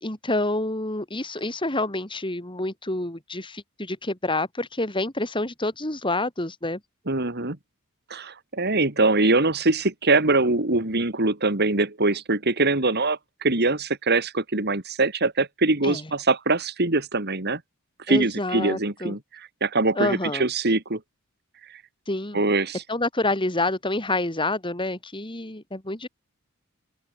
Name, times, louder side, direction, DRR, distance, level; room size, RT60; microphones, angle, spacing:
voice 1, 0.0-6.8 15.8-16.1 18.1-19.2 20.0-20.5 22.1-22.5 22.9-26.1, left 2 dB, 20° left, 3.5 m, -28 dB
voice 2, 7.1-7.6 8.1-17.6 18.1-21.0 22.3-22.8, right 2 dB, 50° right, 2.7 m, -23 dB
open air
head